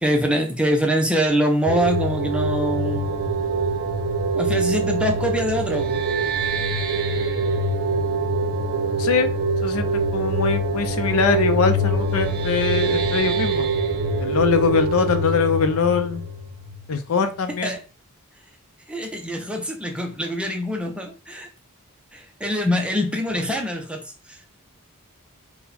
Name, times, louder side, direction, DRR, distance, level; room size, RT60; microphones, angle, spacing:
voice 1, 0.0-3.2 4.3-6.0 15.0-15.2 17.6-17.8 18.9-21.5 22.1-24.0, equal, 5° right, 3 dB, 0.5 m, -24 dB
sound 1, 1.7-17.1, right 2 dB, 45° right, 0.7 m, -24 dB
voice 2, 9.6-13.7 14.2-16.2 16.9-17.8, left 5 dB, 70° left, 8 dB, 0.5 m, -22 dB
4.2 x 2.2 x 4.1 m, 0.34 s
head